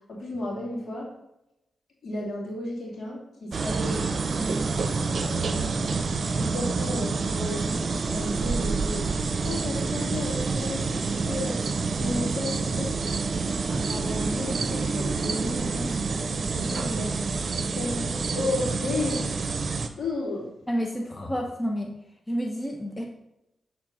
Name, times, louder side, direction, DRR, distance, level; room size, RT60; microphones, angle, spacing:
voice 1, 0.1-1.1 2.0-6.0 6.4-9.0 9.4-11.6 11.8-12.9 13.2-16.0 16.4-19.3 20.0-20.5 21.0-21.1, left 2 dB, 70° left, -3 dB, 2.7 m, -34 dB
sound 1, 3.5-19.9, right 4 dB, 60° right, 0.7 m, -28 dB
voice 2, 20.7-21.9 22.3-23.1, equal, 25° left, 1 dB, 1.1 m, -29 dB
7.3 x 4.0 x 6.4 m, 0.87 s
cardioid pair, 50°, 0 cm